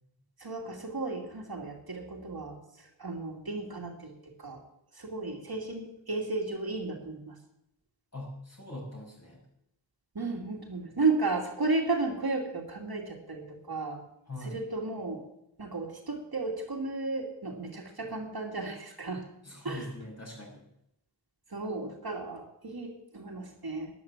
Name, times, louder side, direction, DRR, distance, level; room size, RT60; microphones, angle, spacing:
voice 1, 0.4-4.1 4.4-4.6 5.0-7.3 10.1-14.0 14.4-15.2 15.6-19.2 19.6-19.8 21.5-23.9, right 3 dB, 50° right, 1 dB, 2.5 m, -34 dB
voice 2, 8.1-9.4 14.3-14.6 19.4-20.7, left 1 dB, 35° left, -1 dB, 5.9 m, -42 dB
12.0 x 10.5 x 7.3 m, 0.80 s
wide cardioid pair, 80°, 47 cm